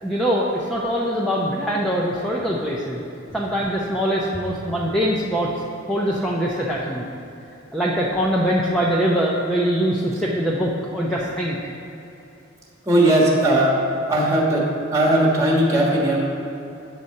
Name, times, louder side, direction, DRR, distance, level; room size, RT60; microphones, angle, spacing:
voice 1, 0.0-3.0 3.3-5.5 5.9-7.1 7.7-11.6, equal, 5° left, -5 dB, 0.6 m, -23 dB
voice 2, 12.9-13.7 14.1-14.6 14.9-16.2, right 1 dB, 15° right, -4 dB, 1.3 m, -17 dB
8.5 x 4.1 x 6.4 m, 2.8 s
head